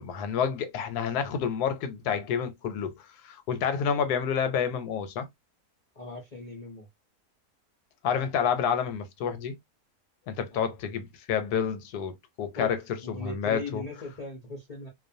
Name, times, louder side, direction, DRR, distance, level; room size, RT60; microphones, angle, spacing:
voice 1, 0.0-2.9 3.2-5.3 8.0-9.5 10.3-12.8 13.1-13.8, left 7 dB, 80° left, 1.1 m, -29 dB
voice 2, 6.0-6.9 10.5-10.7 12.5-12.7 13.0-14.9, left 2 dB, 55° left, 0.4 m, -39 dB
2.5 x 2.2 x 2.5 m
omnidirectional pair, 1.6 m